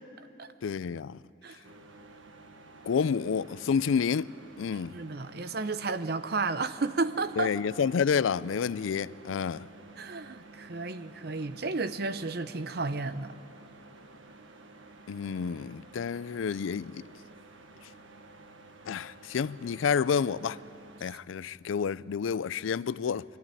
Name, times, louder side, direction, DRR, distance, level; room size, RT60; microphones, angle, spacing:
voice 1, 0.6-1.2 2.8-4.3 4.6-4.9 7.4-9.7 15.1-17.0 18.9-20.6 21.0-23.2, left 6 dB, 90° left, 0.4 m, -29 dB
sound 1, 1.6-21.0, right 2 dB, 85° right, 1.4 m, -52 dB
voice 2, 4.9-7.5 10.0-13.3, right 3 dB, 55° right, 0.7 m, -32 dB
23.5 x 14.0 x 9.9 m
head